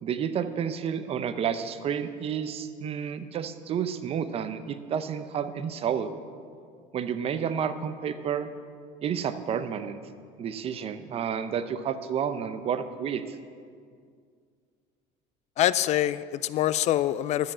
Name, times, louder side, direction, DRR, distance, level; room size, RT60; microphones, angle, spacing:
voice 1, 0.0-6.1 6.9-8.5 9.0-10.0 10.4-13.2, right 8 dB, 40° right, 11 dB, 0.7 m, -30 dB
voice 2, 15.6-17.5, left 12 dB, 45° left, 16 dB, 0.4 m, -25 dB
12.5 x 7.7 x 7.3 m, 2.2 s
cardioid pair, 120°, 16 cm